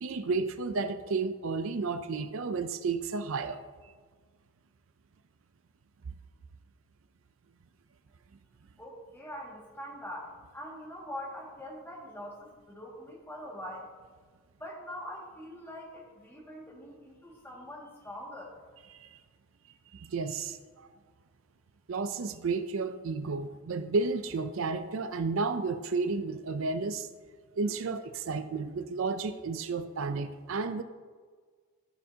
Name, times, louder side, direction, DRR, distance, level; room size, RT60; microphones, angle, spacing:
voice 1, 0.0-3.9 18.9-19.2 19.9-20.9 21.9-27.1 27.6-30.8, right 4 dB, 65° right, 10 dB, 0.5 m, -32 dB
voice 2, 8.8-13.9 14.6-18.6, equal, 10° left, -3 dB, 1.9 m, -43 dB
15.0 x 6.7 x 2.8 m, 1.6 s
head